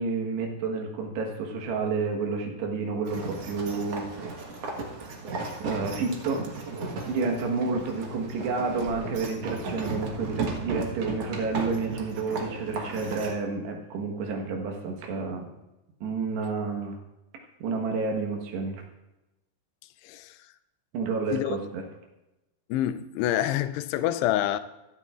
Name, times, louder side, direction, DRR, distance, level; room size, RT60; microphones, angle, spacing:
voice 1, 0.0-4.1 5.6-6.5 7.1-15.5 16.0-17.0 17.6-18.8 20.9-21.6, right 4 dB, 85° right, 3.5 m, -30 dB
sound 1, 3.1-13.3, right 3 dB, 60° right, 1.7 m, -35 dB
voice 2, 20.0-20.5 21.3-21.6 22.7-24.6, left 12 dB, 85° left, 2.7 m, -27 dB
16.0 x 12.0 x 2.5 m
omnidirectional pair, 4.7 m